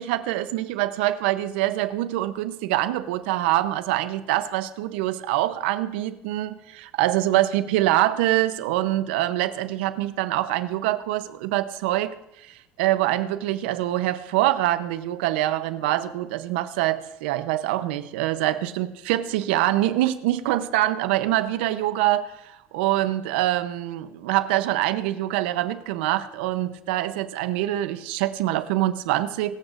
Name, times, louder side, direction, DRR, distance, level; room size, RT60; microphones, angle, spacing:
voice 1, 0.0-12.1 12.5-29.5, right 14 dB, 90° right, 13 dB, 0.7 m, -25 dB
23.5 x 8.0 x 2.5 m, 0.83 s
supercardioid pair, 105°, 6 cm